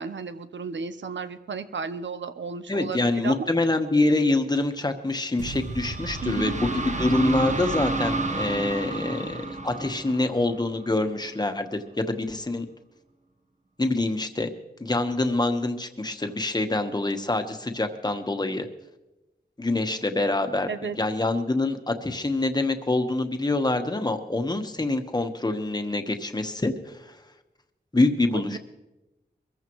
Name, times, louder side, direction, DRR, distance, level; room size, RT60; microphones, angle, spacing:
voice 1, 0.0-3.5 6.2-6.5 20.7-21.0 28.3-28.6, right 5 dB, 80° right, 11 dB, 0.8 m, -33 dB
voice 2, 2.7-12.7 13.8-14.5 14.8-18.7 19.6-27.0 27.9-28.6, left 2 dB, 20° left, 6 dB, 1.2 m, -25 dB
sound 1, 5.4-11.0, right 2 dB, 40° right, 1.1 m, -30 dB
23.0 x 15.0 x 3.1 m, 1.0 s
wide cardioid pair, 100°, 19 cm